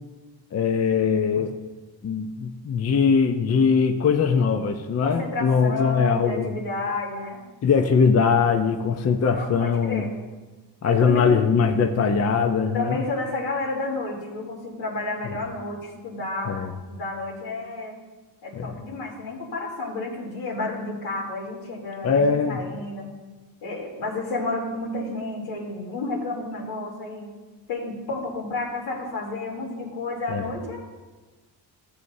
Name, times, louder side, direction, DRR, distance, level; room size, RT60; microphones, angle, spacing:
voice 1, 0.5-1.5 2.0-6.5 7.6-10.0 10.8-13.0 16.5-16.7 18.5-18.7 22.0-22.6 30.3-30.4, left 5 dB, 35° left, 5 dB, 0.6 m, -21 dB
voice 2, 5.0-7.4 9.3-10.1 10.8-11.4 12.7-16.6 16.9-18.0 18.4-23.1 23.6-27.3 27.7-30.8, left 2 dB, 80° left, -3 dB, 3.2 m, -31 dB
14.0 x 8.0 x 2.7 m, 1.2 s
cardioid pair, 95°, 45 cm